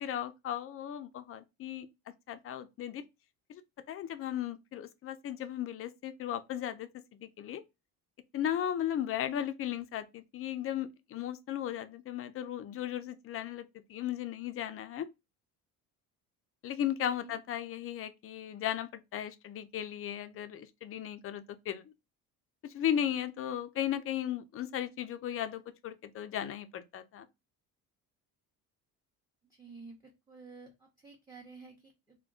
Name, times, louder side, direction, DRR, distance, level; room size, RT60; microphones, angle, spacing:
voice 1, 0.0-1.9 2.3-3.0 3.5-3.6 3.9-6.9 7.2-7.6 8.3-15.1 16.6-21.9 22.6-27.3, left 10 dB, 40° left, 0.4 m, -36 dB
voice 2, 29.4-32.2, right 4 dB, 10° right, 0.6 m, -52 dB
3.6 x 2.2 x 2.4 m
cardioid pair, 110°, 37 cm